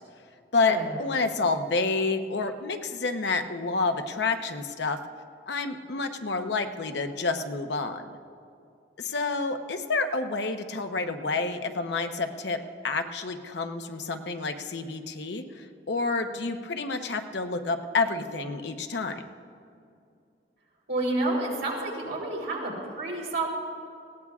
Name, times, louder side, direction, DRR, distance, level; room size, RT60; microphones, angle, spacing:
voice 1, 0.5-5.0 5.5-8.0 9.0-19.2, left 3 dB, 70° left, 6 dB, 0.8 m, -29 dB
voice 2, 20.9-23.5, right 2 dB, 85° right, -3 dB, 3.9 m, -29 dB
20.5 x 17.0 x 2.4 m, 2.4 s
head